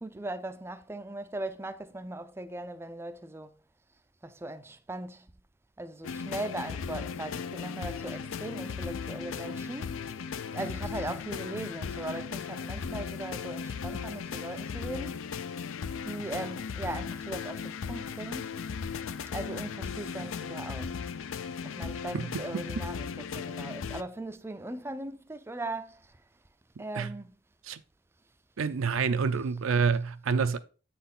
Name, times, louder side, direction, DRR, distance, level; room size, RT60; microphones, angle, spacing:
voice 1, 0.0-3.6 4.2-5.3 5.8-10.0 10.5-15.1 16.0-18.6 19.3-21.0 21.6-26.2 26.8-27.4, right 2 dB, 10° right, 0.4 m, -39 dB
sound 1, 6.0-24.0, left 6 dB, 75° left, 0.4 m, -37 dB
voice 2, 22.5-22.9 26.9-27.1 27.6-27.8 28.6-30.6, right 5 dB, 80° right, 0.5 m, -28 dB
7.8 x 4.2 x 3.7 m
head